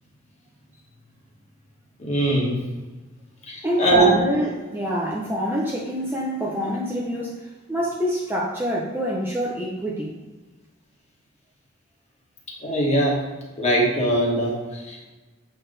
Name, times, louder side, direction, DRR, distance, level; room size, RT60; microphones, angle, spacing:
voice 1, 2.0-2.6 3.5-4.2 12.6-13.2 13.6-15.1, right 1 dB, 30° left, -3 dB, 1.6 m, -21 dB
voice 2, 3.6-10.1, equal, 10° right, -4 dB, 0.7 m, -26 dB
7.8 x 4.2 x 3.4 m, 1.2 s
head